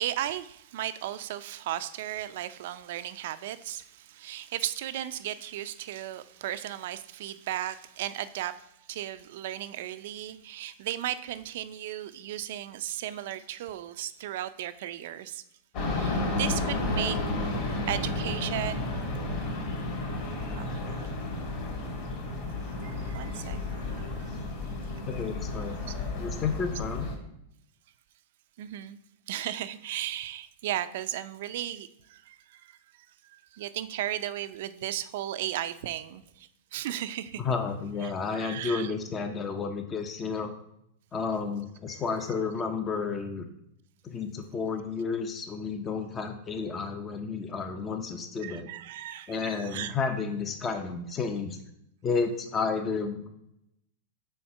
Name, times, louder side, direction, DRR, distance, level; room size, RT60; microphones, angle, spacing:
voice 1, 0.0-15.4 15.8-17.2 17.9-19.0 20.5-20.7 22.7-24.3 25.7-25.8 28.6-29.0 29.3-32.8 33.3-37.4 38.0-38.9 41.9-42.0 48.4-49.9, right 12 dB, 60° right, 13 dB, 0.4 m, -35 dB
sound 1, 15.7-27.1, left 2 dB, 45° left, 2.0 m, -32 dB
voice 2, 25.0-25.8 26.2-27.1 37.4-40.5 41.1-43.4 44.0-48.7 49.3-51.6 52.0-53.3, left 5 dB, 20° left, 6 dB, 0.5 m, -31 dB
4.3 x 4.2 x 5.5 m, 0.79 s
supercardioid pair, 150°, 0 cm